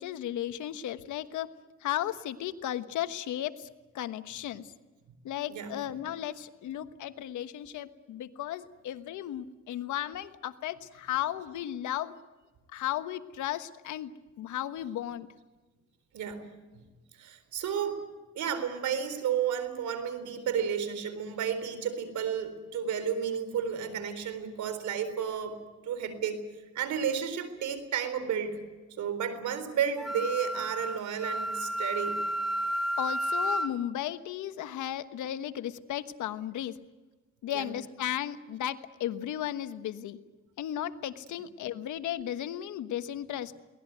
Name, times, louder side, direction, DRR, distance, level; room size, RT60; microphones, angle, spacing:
voice 1, 0.0-1.5 1.8-3.7 3.9-4.7 5.2-12.2 12.7-15.3 33.0-36.8 37.4-40.2 40.6-43.6, left 11 dB, 75° left, 11 dB, 1.3 m, -35 dB
voice 2, 17.1-18.0 18.3-25.6 25.8-26.4 26.7-28.6 29.0-32.2 37.5-37.7, right 8 dB, 75° right, 11 dB, 4.1 m, -32 dB
Wind instrument woodwind instrument, 30.0-33.7, equal, ahead, 2.0 m, -31 dB
23.0 x 18.5 x 9.4 m, 1.2 s
cardioid pair, 75°, 30 cm